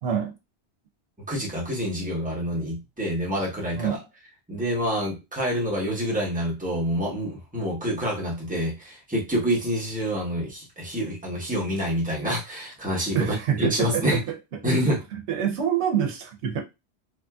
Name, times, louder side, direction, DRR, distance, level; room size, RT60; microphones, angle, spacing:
voice 1, 0.0-0.3 3.7-4.0 13.1-14.4 15.1-16.6, right 8 dB, 80° right, 0.9 m, -26 dB
voice 2, 1.3-4.0 4.5-14.2 14.6-15.0, equal, 10° right, 0.9 m, -27 dB
3.0 x 2.6 x 2.3 m
omnidirectional pair, 1.2 m